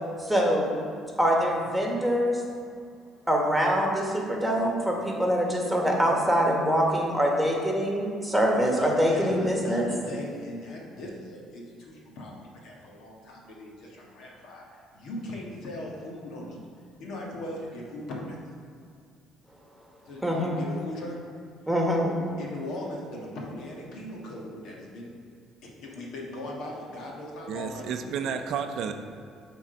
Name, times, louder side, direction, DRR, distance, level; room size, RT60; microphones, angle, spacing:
voice 1, 0.2-0.7 1.2-2.3 3.3-9.8 20.2-20.6 21.7-22.1, equal, 5° right, -1 dB, 1.6 m, -24 dB
voice 2, 8.5-16.6 17.0-18.4 20.1-21.1 22.4-25.1 25.6-27.8 28.2-28.3, left 1 dB, 70° left, -2 dB, 1.5 m, -39 dB
voice 3, 27.5-28.9, right 7 dB, 65° right, 7 dB, 0.5 m, -31 dB
7.2 x 3.8 x 5.2 m, 2.3 s
supercardioid pair, 70°, 0 cm